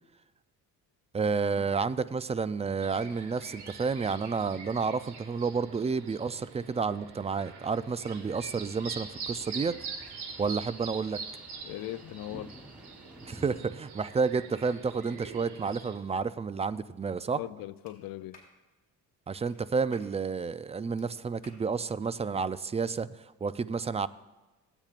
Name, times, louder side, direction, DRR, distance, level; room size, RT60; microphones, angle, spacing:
voice 1, 1.1-9.8 10.4-11.2 13.3-17.4 19.3-24.1, right 5 dB, 20° right, 0.3 m, -30 dB
sound 1, 2.8-16.0, right 5 dB, 80° right, 1.9 m, -44 dB
sound 2, 8.1-13.6, equal, 5° right, 0.8 m, -52 dB
voice 2, 11.6-12.5 17.4-18.4, left 15 dB, 65° left, 0.5 m, -39 dB
Clapping, 17.9-18.0 18.3-18.6 19.4-19.6 19.9-20.1 21.0-21.1 21.4-21.6, left 3 dB, 20° left, 3.6 m, -55 dB
17.5 x 8.9 x 2.5 m
supercardioid pair, 80°, 38 cm